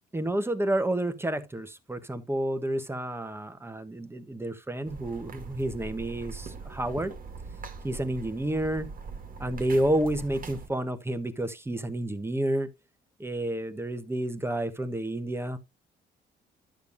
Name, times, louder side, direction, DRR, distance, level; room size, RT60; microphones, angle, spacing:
voice 1, 0.1-7.1 7.8-8.9 9.4-12.7 13.2-15.6, right 1 dB, 10° right, 1.2 m, -30 dB
sound 1, 4.8-10.7, right 4 dB, 45° right, 1.6 m, -42 dB
11.5 x 6.9 x 2.6 m
cardioid pair, 90°, 20 cm